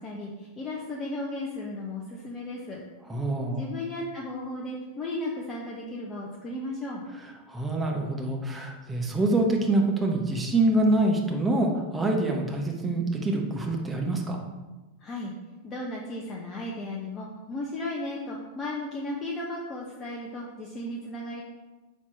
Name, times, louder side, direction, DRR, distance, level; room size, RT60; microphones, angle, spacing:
voice 1, 0.0-2.8 3.6-7.0 15.0-15.3 15.6-21.4, left 1 dB, 25° left, -2 dB, 0.9 m, -35 dB
voice 2, 3.1-3.6 7.5-14.4, right 2 dB, 10° right, 0 dB, 1.1 m, -25 dB
5.7 x 4.3 x 4.6 m, 1.1 s
figure-of-eight pair, 90°, 0 cm